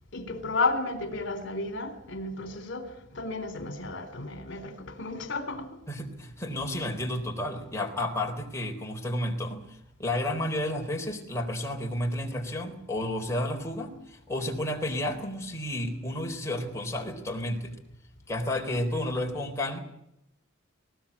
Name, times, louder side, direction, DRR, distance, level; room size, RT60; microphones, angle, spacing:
voice 1, 0.1-2.9 3.1-5.7, left 3 dB, 60° left, 3.6 m, -32 dB
voice 2, 5.9-9.6 10.0-17.8 18.3-19.8, left 1 dB, 15° left, 4.0 m, -31 dB
20.5 x 19.0 x 8.6 m
head